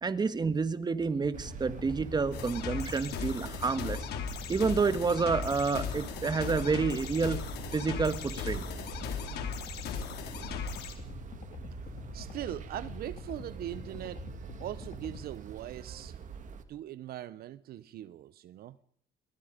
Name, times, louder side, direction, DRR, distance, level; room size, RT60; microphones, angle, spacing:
voice 1, 0.0-4.1 4.5-7.4 7.7-8.7, right 4 dB, 25° right, 1.6 m, -29 dB
sound 1, 1.2-15.3, left 5 dB, 55° left, 2.7 m, -46 dB
sound 2, 1.3-16.6, right 7 dB, 50° right, 2.5 m, -44 dB
sound 3, 2.3-10.9, left 8 dB, 75° left, 3.9 m, -38 dB
voice 2, 12.1-14.2 14.6-16.1 16.7-18.8, right 12 dB, 65° right, 0.8 m, -40 dB
27.5 x 23.0 x 5.2 m
cardioid pair, 110°, 17 cm